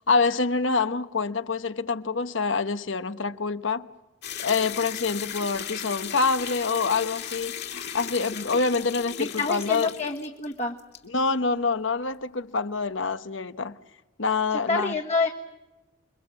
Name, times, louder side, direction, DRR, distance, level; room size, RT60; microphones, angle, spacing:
voice 1, 0.0-3.9 4.4-9.9 11.1-13.8 14.2-14.9, left 4 dB, 80° left, 1.1 m, -26 dB
sound 1, 4.2-10.5 10.8-11.0, left 8 dB, 60° left, 2.8 m, -36 dB
voice 2, 9.2-10.8 14.7-15.3, left 3 dB, 35° left, 1.4 m, -27 dB
29.0 x 23.0 x 7.6 m
head